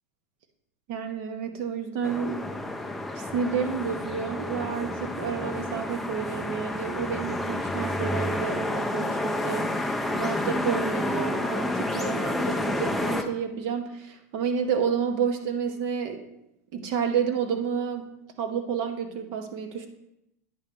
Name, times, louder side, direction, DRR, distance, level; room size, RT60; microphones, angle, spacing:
voice 1, 0.9-2.5 3.1-16.3 16.7-18.1 18.4-19.9, right 7 dB, 40° right, 5 dB, 0.9 m, -30 dB
sound 1, 2.0-13.2, left 1 dB, ahead, 0.3 m, -30 dB
9.2 x 3.2 x 6.1 m, 0.84 s
supercardioid pair, 170°, 9 cm